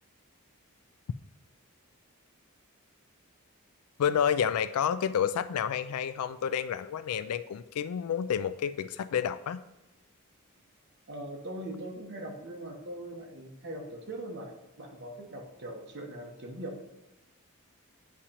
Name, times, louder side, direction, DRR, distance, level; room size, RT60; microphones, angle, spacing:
voice 1, 4.0-9.6, left 8 dB, 80° left, 14 dB, 0.3 m, -29 dB
voice 2, 11.1-16.9, right 1 dB, 50° right, 1 dB, 1.0 m, -41 dB
8.4 x 5.0 x 2.9 m, 0.98 s
head